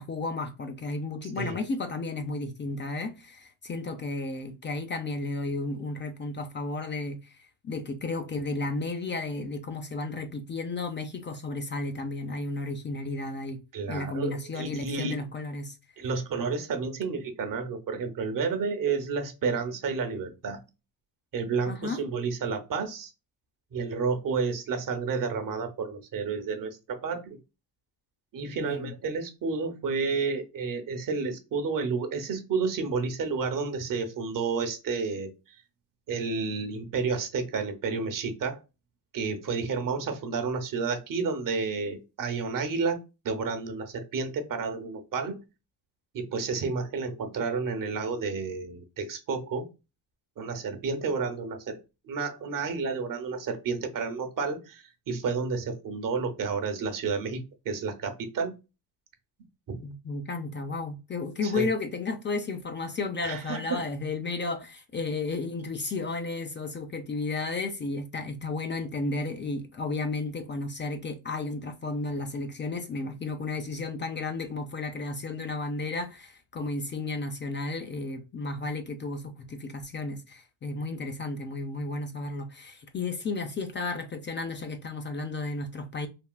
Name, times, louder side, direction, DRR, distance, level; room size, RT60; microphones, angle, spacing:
voice 1, 0.0-13.6 13.9-15.8 21.7-22.0 28.6-28.9 59.8-86.1, left 3 dB, 30° left, 0.4 m, -33 dB
voice 2, 13.7-15.2 16.0-20.6 21.3-23.1 23.7-27.4 28.3-35.6 36.1-38.6 39.1-43.0 43.2-45.4 46.1-49.7 50.4-58.5 59.7-59.8 61.4-61.7 63.2-63.8, right 4 dB, 55° right, 0.8 m, -31 dB
3.5 x 2.3 x 2.2 m
cardioid pair, 100°, 38 cm